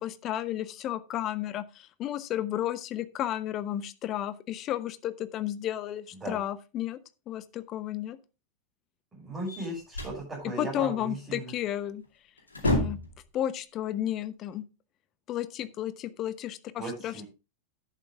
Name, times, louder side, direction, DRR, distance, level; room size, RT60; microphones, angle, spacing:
voice 1, 0.0-7.0 7.3-8.2 10.6-12.0 12.6-13.0 13.3-14.6 15.3-17.2, left 12 dB, 35° left, 15 dB, 0.9 m, -33 dB
voice 2, 9.1-11.5 16.8-17.2, right 2 dB, 15° right, -6 dB, 6.7 m, -37 dB
sound 1, 9.5-10.2 11.9-12.0 12.4-13.2, left 1 dB, 80° left, 2.4 m, -29 dB
11.0 x 8.3 x 3.5 m, 0.30 s
figure-of-eight pair, 90°, 0 cm